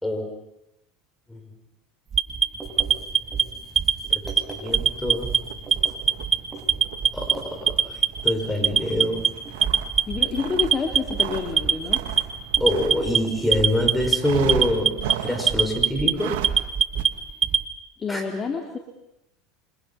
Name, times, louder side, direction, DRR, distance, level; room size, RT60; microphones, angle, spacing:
Alarm, 2.1-3.4 3.8-4.4 4.7-5.4 5.7-6.3 6.7-7.3 7.7-8.3 8.6-9.3 9.6-10.2 10.6-11.2 11.6-12.2 12.5-13.2 13.5-14.2 14.5-15.1 15.5-16.1 16.4-17.6, right 7 dB, 30° right, 1.6 m, -20 dB
Writing, 2.5-14.2, right 3 dB, 15° right, 6.4 m, -44 dB
voice 1, 4.0-5.4 7.1-9.4 12.6-16.4 18.1-18.2, left 1 dB, 5° left, 4 dB, 5.8 m, -26 dB
sound 1, 4.5-13.7 14.2-15.6 16.1-16.6 16.9-17.0, right 11 dB, 75° right, 2.4 m, -36 dB
voice 2, 10.1-12.0 18.0-18.8, left 5 dB, 30° left, 3 dB, 3.0 m, -28 dB
28.0 x 26.0 x 5.8 m, 0.86 s
supercardioid pair, 100°, 0 cm